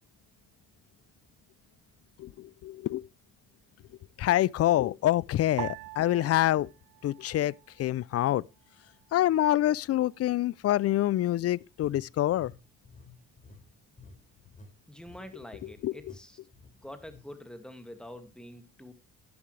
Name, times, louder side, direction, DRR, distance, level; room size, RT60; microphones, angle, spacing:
voice 1, 2.2-3.1 4.2-6.7 7.0-8.4 9.1-12.5 15.8-15.9, left 13 dB, 55° left, 0.4 m, -26 dB
sound 1, 5.6-8.1 8.4-9.3 9.9-10.3, right 20 dB, 80° right, 0.5 m, -44 dB
sound 2, 11.8-14.7 15.0-15.3 15.6-15.7 16.0-16.2 16.5-17.2, left 2 dB, 25° left, 3.4 m, -52 dB
voice 2, 14.9-16.4 16.8-18.9, left 1 dB, 5° left, 2.1 m, -46 dB
11.0 x 10.5 x 3.2 m
cardioid pair, 90°, 30 cm